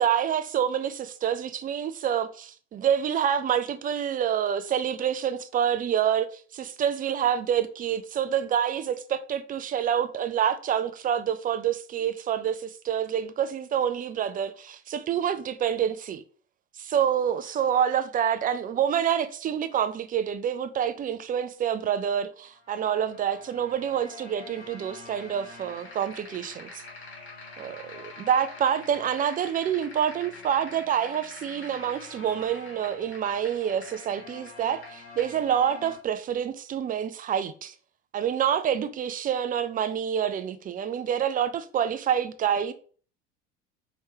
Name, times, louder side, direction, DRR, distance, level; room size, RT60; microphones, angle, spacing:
voice 1, 0.0-16.2 16.8-26.8 27.6-37.7 38.1-42.7, right 9 dB, 25° right, 0.4 m, -27 dB
sound 1, 22.5-36.0, left 4 dB, 70° left, 1.5 m, -48 dB
sound 2, 25.3-35.3, left 3 dB, 35° left, 1.9 m, -47 dB
4.7 x 3.2 x 3.0 m
hypercardioid pair, 75°, 35 cm